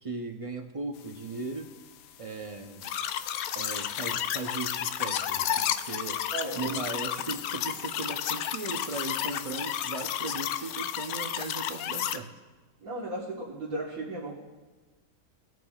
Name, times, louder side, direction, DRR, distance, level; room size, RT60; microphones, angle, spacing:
voice 1, 0.0-1.7 2.2-2.9 3.6-6.3 6.5-12.3, right 3 dB, 35° right, 4 dB, 0.5 m, -37 dB
sound 1, 2.8-12.2, left 10 dB, 85° left, 1.0 m, -32 dB
voice 2, 6.3-6.8 12.8-14.4, right 2 dB, 75° right, -6 dB, 1.9 m, -35 dB
18.5 x 9.2 x 2.4 m, 1.3 s
omnidirectional pair, 1.5 m